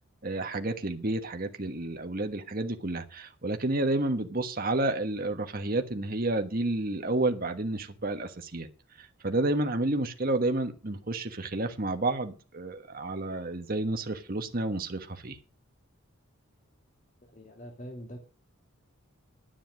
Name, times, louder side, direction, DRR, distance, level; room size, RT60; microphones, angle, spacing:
voice 1, 0.2-8.7 9.0-15.4, right 2 dB, 45° right, 1.3 m, -30 dB
voice 2, 17.3-18.2, equal, 35° left, 2.4 m, -43 dB
10.5 x 9.9 x 6.4 m
head